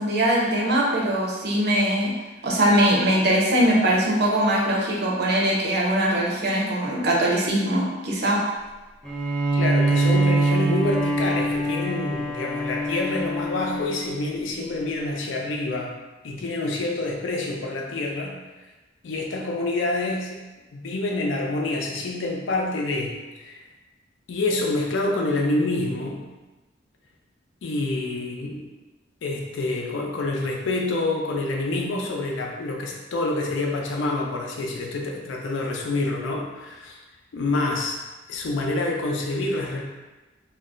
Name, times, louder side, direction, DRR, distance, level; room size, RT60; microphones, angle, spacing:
voice 1, 0.0-2.1 2.4-8.4, right 1 dB, 60° right, -4 dB, 0.6 m, -21 dB
Bowed string instrument, 9.0-14.5, right 2 dB, 5° left, 0.3 m, -24 dB
voice 2, 9.5-15.9 16.2-18.3 19.0-20.4 20.7-23.6 24.3-26.3 27.6-28.7 29.2-37.0 37.3-38.0 38.3-39.8, left 2 dB, 75° left, 0 dB, 0.4 m, -27 dB
2.2 x 2.0 x 3.6 m, 1.2 s
head